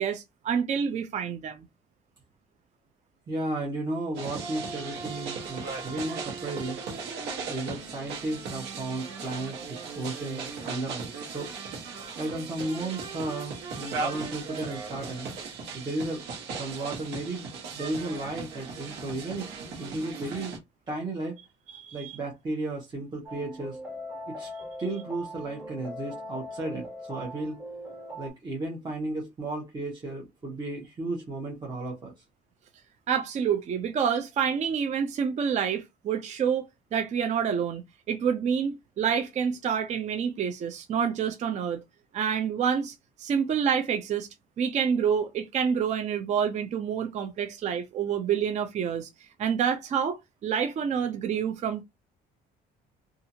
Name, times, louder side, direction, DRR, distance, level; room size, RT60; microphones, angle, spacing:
voice 1, 0.0-1.7 21.7-22.1 33.1-41.8 42.1-44.3 44.6-49.1 49.4-51.8, right 7 dB, 45° right, 0.5 m, -28 dB
voice 2, 3.3-7.1 7.5-11.5 12.2-16.2 16.6-17.4 17.7-19.5 19.8-20.5 20.9-21.4 21.9-23.8 24.3-24.5 24.8-27.6 28.2-32.1, right 2 dB, 25° right, 1.0 m, -34 dB
sound 1, 4.2-20.6, right 4 dB, 85° right, 1.1 m, -37 dB
sound 2, 23.3-28.3, equal, 10° right, 1.5 m, -40 dB
2.7 x 2.4 x 2.7 m
cardioid pair, 110°, 17 cm